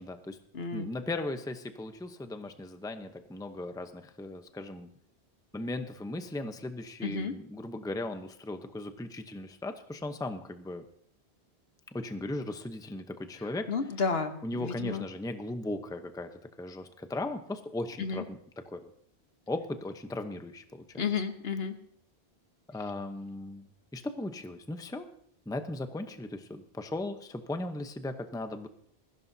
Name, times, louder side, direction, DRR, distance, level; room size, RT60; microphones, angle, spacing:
voice 1, 0.0-0.4 0.7-4.9 5.5-10.8 11.9-13.7 14.4-18.9 19.5-21.0 22.7-23.7 23.9-25.1 25.5-28.7, left 2 dB, 5° left, 8 dB, 0.7 m, -37 dB
voice 2, 0.5-0.9 7.0-7.3 13.4-15.1 18.0-18.2 21.0-21.8, left 5 dB, 70° left, 7 dB, 1.4 m, -32 dB
20.5 x 15.5 x 2.7 m, 0.64 s
omnidirectional pair, 1.1 m